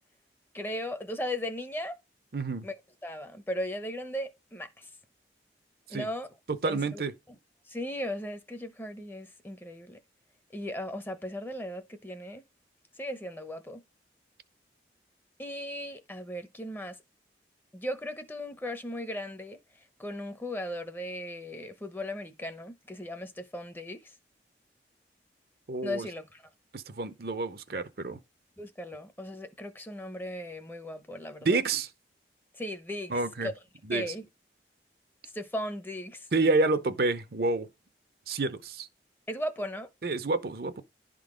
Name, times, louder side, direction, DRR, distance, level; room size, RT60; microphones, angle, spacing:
voice 1, 0.5-2.0 2.6-2.8 3.0-4.9 5.9-6.3 6.6-7.0 7.3-7.4 7.7-10.0 10.5-12.4 13.0-13.8 15.4-17.0 17.7-19.6 20.0-24.1 25.8-26.5 28.6-31.6 32.6-33.5 33.9-34.3 35.3-36.3 39.3-39.9, left 1 dB, 10° left, 0.7 m, -37 dB
voice 2, 2.3-2.7 5.9-6.1 6.5-7.1 25.7-26.1 26.7-28.2 31.4-31.9 33.1-33.5 33.9-34.1 36.3-37.7 38.3-38.9 40.0-40.7, right 3 dB, 55° right, 0.7 m, -28 dB
11.0 x 3.8 x 5.0 m
head